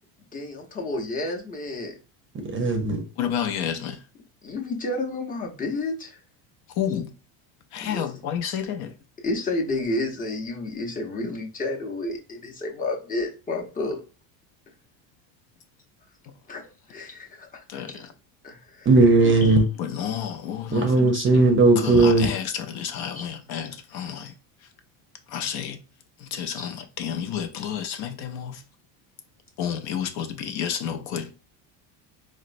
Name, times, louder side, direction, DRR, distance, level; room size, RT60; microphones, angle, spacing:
voice 1, 0.3-1.9 4.4-6.2 7.8-8.0 9.2-14.0 16.5-18.0 18.4-18.9 19.2-19.6 23.1-23.3 25.4-25.5 26.6-26.7, left 2 dB, 20° left, 0.7 m, -31 dB
voice 2, 2.5-3.0 18.9-19.6 20.7-22.3, right 3 dB, 25° right, 0.6 m, -17 dB
voice 3, 3.2-4.0 6.8-7.1 7.7-8.9 17.7-18.1 19.8-21.5 21.8-24.3 24.6-24.7 25.3-25.8 26.2-28.6 29.6-31.3, left 8 dB, 55° left, 0.6 m, -30 dB
4.3 x 2.1 x 2.5 m
supercardioid pair, 120°, 46 cm